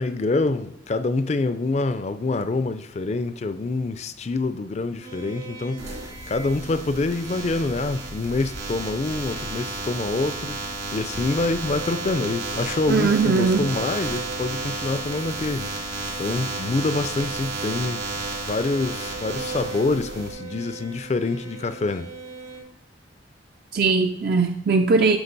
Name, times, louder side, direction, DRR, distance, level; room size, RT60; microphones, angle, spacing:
voice 1, 0.0-10.6 10.9-18.2 18.5-22.1, left 3 dB, 35° left, 0.4 m, -26 dB
sound 1, 5.0-22.6, right 4 dB, 85° right, 3.6 m, -40 dB
sound 2, 5.8-20.3, right 3 dB, 70° right, 2.3 m, -33 dB
voice 2, 12.9-13.7 23.7-25.2, right 4 dB, 50° right, 0.4 m, -20 dB
9.7 x 5.9 x 4.0 m
head